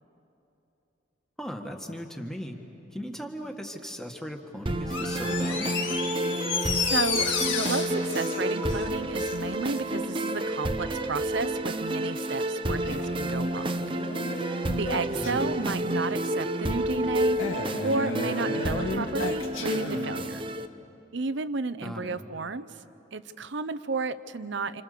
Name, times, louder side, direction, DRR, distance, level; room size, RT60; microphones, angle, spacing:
voice 1, 1.4-2.6 2.9-5.7 15.1-15.5 21.8-22.2, equal, 5° left, 3 dB, 1.7 m, -37 dB
sound 1, 4.7-20.7, right 1 dB, 25° right, 0.8 m, -30 dB
Door, 4.8-9.4 9.7-9.8, left 6 dB, 65° left, 1.9 m, -31 dB
voice 2, 6.7-13.9 14.2-17.4 17.8-20.4 21.1-22.7 23.1-24.8, right 3 dB, 65° right, 13 dB, 0.7 m, -32 dB
Male speech man speaking, 12.8-15.8 17.4-20.4, left 1 dB, 80° left, 2.2 m, -35 dB
29.5 x 27.5 x 6.8 m, 3.0 s
head